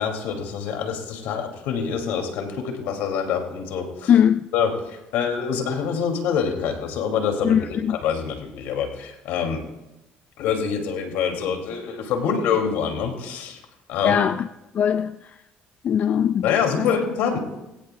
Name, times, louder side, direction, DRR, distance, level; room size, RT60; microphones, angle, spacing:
voice 1, 0.0-4.1 4.5-9.6 10.4-13.6 13.9-14.2 16.4-17.4, left 7 dB, 80° left, 2.6 m, -25 dB
voice 2, 4.1-4.5 7.4-8.0 14.0-14.5 14.7-15.2 15.8-16.5 16.8-16.9, left 9 dB, 45° left, 0.4 m, -20 dB
20.0 x 17.0 x 2.3 m
cardioid pair, 105°, 3 cm